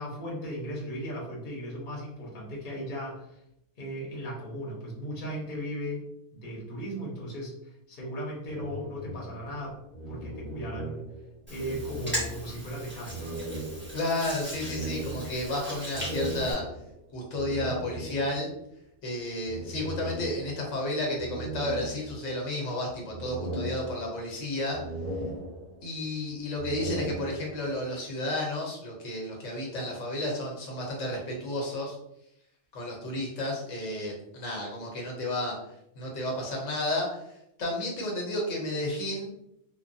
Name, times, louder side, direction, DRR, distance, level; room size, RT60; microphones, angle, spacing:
voice 1, 0.0-3.4 3.8-6.0 6.3-9.7 10.1-11.0 11.5-13.2, equal, 45° left, -3 dB, 0.9 m, -37 dB
sound 1, 8.4-11.3 11.5-12.6 13.0-18.5 19.4-20.7 21.2-22.5 22.9-24.4 24.7-26.0 26.4-27.8, right 1 dB, 35° right, 0.9 m, -38 dB
Hands, 11.5-16.5, equal, 10° right, 1.2 m, -39 dB
voice 2, 13.9-16.6 17.1-18.5 19.0-24.8 25.8-31.9 32.7-35.6 35.9-37.2 37.6-39.3, left 1 dB, 75° left, -1 dB, 1.1 m, -32 dB
3.2 x 2.2 x 2.6 m, 0.80 s
omnidirectional pair, 1.3 m